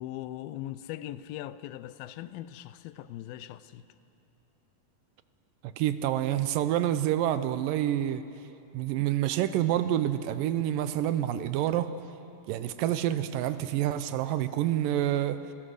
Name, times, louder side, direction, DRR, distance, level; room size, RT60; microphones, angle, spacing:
voice 1, 0.0-3.8, left 13 dB, 85° left, 2.4 m, -40 dB
voice 2, 5.6-8.2 8.7-11.9 12.5-15.4, right 12 dB, 80° right, 2.2 m, -28 dB
28.0 x 17.0 x 6.4 m
omnidirectional pair, 4.1 m